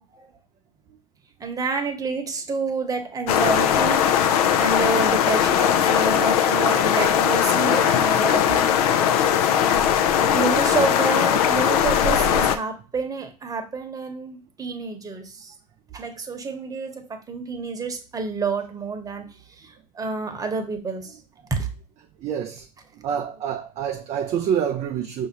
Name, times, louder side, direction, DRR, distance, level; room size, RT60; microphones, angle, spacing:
voice 1, 1.4-8.7 10.3-15.5 15.9-19.3 19.6-21.2 21.5-21.7, right 4 dB, 15° right, 1.1 m, -29 dB
sound 1, 3.3-12.6, left 9 dB, 65° left, 0.6 m, -19 dB
voice 2, 22.2-22.7 22.9-25.3, right 8 dB, 35° right, 0.5 m, -27 dB
5.4 x 2.7 x 2.9 m
hypercardioid pair, 90°, 20 cm